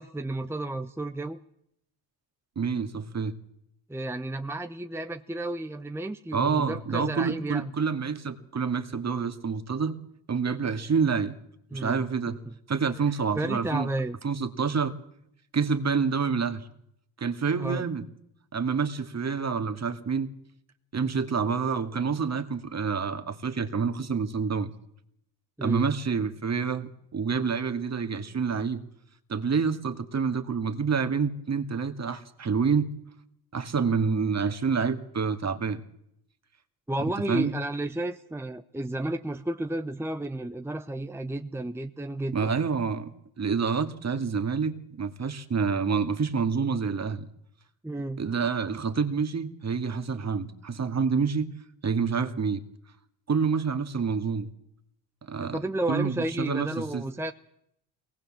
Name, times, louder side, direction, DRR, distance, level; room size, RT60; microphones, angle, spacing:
voice 1, 0.0-1.4 3.9-7.7 11.7-12.5 13.3-14.2 17.6-17.8 25.6-25.9 36.9-42.5 47.8-48.2 55.4-57.3, right 1 dB, 5° right, 8 dB, 0.9 m, -32 dB
voice 2, 2.6-3.3 6.3-10.0 10.3-11.3 11.7-12.4 12.7-13.9 14.2-14.9 15.5-16.7 17.2-18.0 18.5-20.3 20.9-24.7 25.6-28.8 29.3-32.9 33.5-35.8 37.3-37.5 42.3-47.3 48.2-51.5 51.8-52.6 53.3-54.5 55.3-55.6 55.9-57.0, right 5 dB, 35° right, 8 dB, 2.3 m, -27 dB
23.0 x 19.0 x 7.6 m, 0.75 s
supercardioid pair, 80°, 46 cm